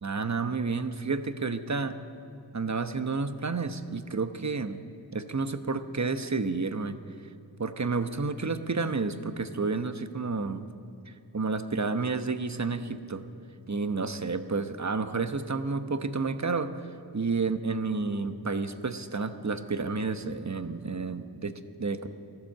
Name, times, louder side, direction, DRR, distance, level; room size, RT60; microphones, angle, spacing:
voice 1, 0.0-2.0 2.5-4.8 5.1-7.0 7.6-10.7 11.1-13.2 13.7-16.7 17.1-22.1, right 4 dB, 40° right, 9 dB, 1.0 m, -30 dB
16.0 x 12.0 x 7.6 m, 2.4 s
wide cardioid pair, 50°, 42 cm